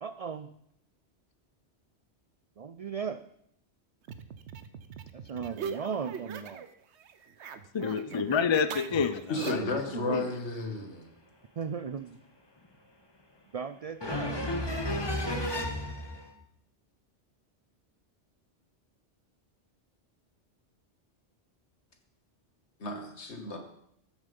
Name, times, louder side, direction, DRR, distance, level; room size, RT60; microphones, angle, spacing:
voice 1, 0.0-0.5 2.6-3.2 5.1-6.7 9.5-10.2 11.6-12.2 13.5-14.4, right 6 dB, 60° right, 11 dB, 0.4 m, -37 dB
sound 1, 4.0-6.7 7.0-9.8, right 7 dB, 75° right, 1.1 m, -41 dB
voice 2, 7.7-9.7 10.1-10.2, left 6 dB, 50° left, 12 dB, 0.3 m, -28 dB
voice 3, 9.3-11.1 22.8-23.6, left 2 dB, 75° left, 5 dB, 1.9 m, -33 dB
voice 4, 14.0-16.3, left 1 dB, 20° left, 3 dB, 1.7 m, -32 dB
13.5 x 7.3 x 5.3 m, 0.72 s
omnidirectional pair, 1.2 m